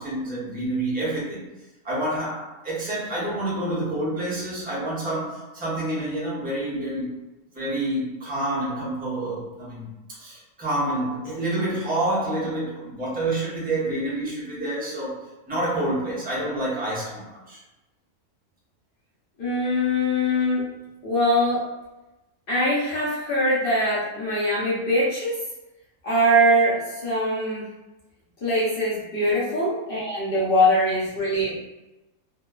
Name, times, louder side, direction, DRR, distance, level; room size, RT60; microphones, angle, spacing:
voice 1, 0.0-1.5 1.8-7.1 7.5-17.6, right 1 dB, 10° right, -7 dB, 0.5 m, -28 dB
voice 2, 19.4-20.7 21.0-21.6 22.5-25.4 26.0-27.7 28.4-31.6, equal, 55° left, -7 dB, 0.7 m, -22 dB
2.9 x 2.1 x 2.2 m, 1.0 s
omnidirectional pair, 1.5 m